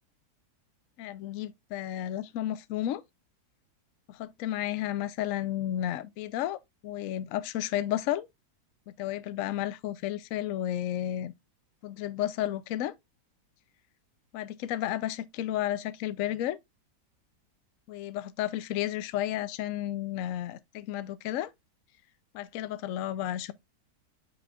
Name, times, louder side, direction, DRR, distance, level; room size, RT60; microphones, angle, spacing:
voice 1, 1.0-3.0 4.1-8.3 9.0-11.3 11.8-12.9 14.3-16.6 17.9-21.5 22.3-23.5, left 12 dB, 65° left, 0.8 m, -32 dB
7.5 x 6.2 x 2.3 m
omnidirectional pair, 1.8 m